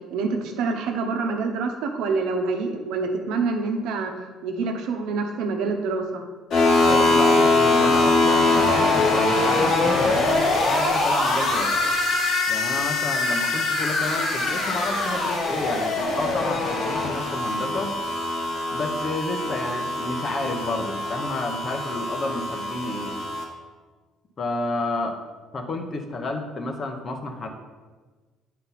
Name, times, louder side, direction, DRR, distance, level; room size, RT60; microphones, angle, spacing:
voice 1, 0.1-4.1 4.4-6.2, right 4 dB, 80° right, 4 dB, 0.9 m, -26 dB
sound 1, 6.5-23.4, left 2 dB, 55° left, 1.6 m, -23 dB
voice 2, 6.9-11.7 12.5-18.0 18.7-23.2 24.4-25.2 25.5-27.5, left 2 dB, 35° left, 4 dB, 0.9 m, -30 dB
8.4 x 4.2 x 4.1 m, 1.3 s
cardioid pair, 130°, 0 cm